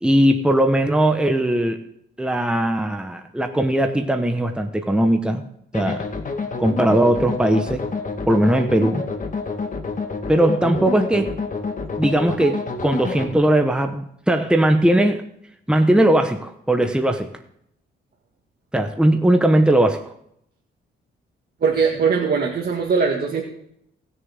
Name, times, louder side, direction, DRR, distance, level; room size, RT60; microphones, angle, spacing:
voice 1, 0.0-1.8 2.2-5.4 5.7-6.0 6.6-7.8 8.3-9.0 10.3-11.3 12.0-15.2 15.7-17.3 18.7-20.0, right 1 dB, 5° right, 5 dB, 1.1 m, -19 dB
sound 1, 5.7-13.3, left 4 dB, 40° left, 1.6 m, -28 dB
voice 2, 21.6-23.4, right 5 dB, 50° right, 0 dB, 1.9 m, -20 dB
19.0 x 6.9 x 3.6 m, 0.73 s
cardioid pair, 85°, 21 cm